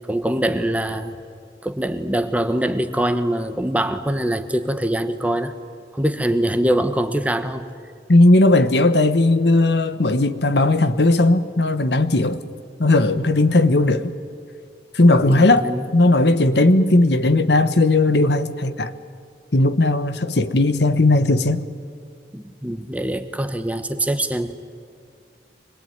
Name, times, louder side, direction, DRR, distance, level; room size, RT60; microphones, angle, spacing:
voice 1, 0.1-1.1 1.6-5.5 5.9-7.7 13.8-14.0 15.2-15.9 22.3-24.5, right 1 dB, 10° right, 1.1 m, -23 dB
voice 2, 8.1-12.4 12.8-14.1 14.9-15.6 15.9-18.9 19.5-21.6, left 2 dB, 75° left, 1.1 m, -17 dB
25.5 x 21.0 x 9.3 m
head